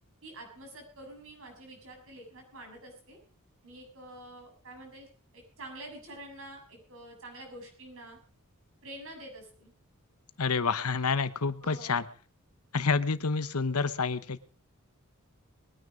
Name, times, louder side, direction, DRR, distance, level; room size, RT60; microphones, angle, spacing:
voice 1, 0.2-3.2 3.6-5.1 5.3-8.2 8.8-9.7 11.6-12.0, right 1 dB, 65° right, 3 dB, 7.2 m, -47 dB
voice 2, 10.4-12.1 12.7-14.4, left 4 dB, 80° left, 13 dB, 1.1 m, -28 dB
22.0 x 9.7 x 5.1 m, 0.40 s
head